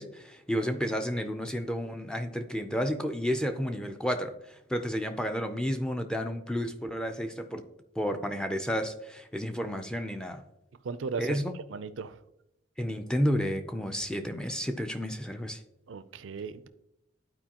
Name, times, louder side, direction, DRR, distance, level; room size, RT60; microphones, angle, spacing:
voice 1, 0.0-7.6 8.0-10.4 11.2-11.5 12.8-15.6, equal, 5° left, 0.4 m, -31 dB
voice 2, 10.8-11.4 11.7-12.2 15.9-16.7, right 5 dB, 80° right, 0.4 m, -36 dB
11.5 x 4.6 x 2.9 m
head